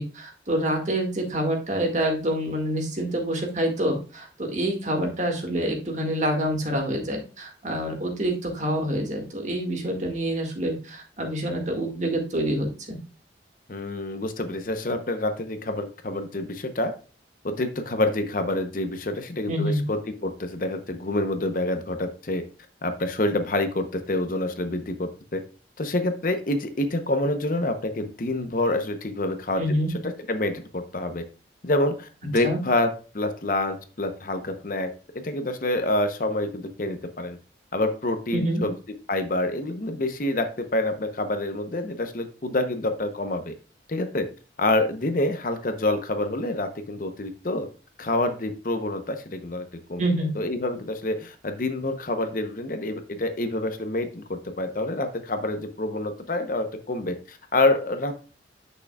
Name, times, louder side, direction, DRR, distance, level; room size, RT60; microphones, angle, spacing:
voice 1, 0.0-13.0 19.5-19.8 29.6-29.9 32.4-32.6 38.3-38.6 50.0-50.3, right 1 dB, 40° right, 2 dB, 1.8 m, -27 dB
voice 2, 13.7-16.9 17.4-22.4 22.8-25.4 25.8-29.6 30.3-31.2 31.6-34.9 35.1-37.4 37.7-38.7 39.1-43.5 43.9-44.3 44.6-47.7 48.0-50.0 50.3-58.1, left 2 dB, 45° left, 8 dB, 0.8 m, -27 dB
8.3 x 6.4 x 2.3 m, 0.35 s
head